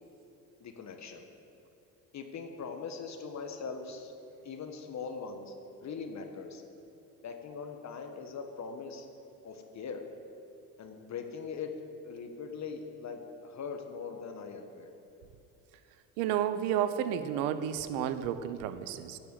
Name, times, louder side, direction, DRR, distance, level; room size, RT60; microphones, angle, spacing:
voice 1, 0.6-1.2 2.1-4.1 4.4-5.5 5.8-6.6 7.2-9.1 9.4-10.0 10.8-11.7 12.0-14.9, left 5 dB, 40° left, 4 dB, 1.5 m, -41 dB
voice 2, 16.2-19.2, right 10 dB, 65° right, 12 dB, 1.0 m, -31 dB
15.5 x 6.9 x 8.2 m, 2.7 s
figure-of-eight pair, 60°, 42 cm